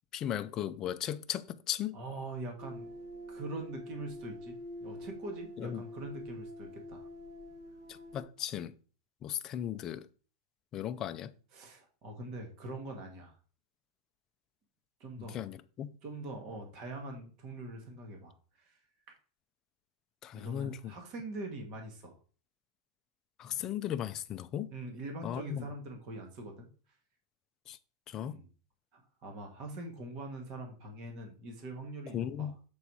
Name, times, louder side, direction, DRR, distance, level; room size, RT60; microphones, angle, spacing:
voice 1, 0.1-2.0 5.6-5.8 7.9-8.7 9.2-10.1 10.7-11.3 15.2-15.9 20.2-20.9 23.4-24.7 25.2-25.7 27.7-27.8 28.1-28.4 32.1-32.5, left 10 dB, 20° left, 0.4 m, -37 dB
voice 2, 1.9-3.0 3.3-7.1 11.5-13.4 15.0-15.4 16.0-18.8 19.1-19.2 20.3-22.1 24.7-26.7 28.1-28.5 28.9-32.5, right 2 dB, 30° right, 1.4 m, -43 dB
sound 1, 2.6-8.2, left 1 dB, 50° right, 4.1 m, -46 dB
6.9 x 4.2 x 4.6 m
supercardioid pair, 170°, 2 cm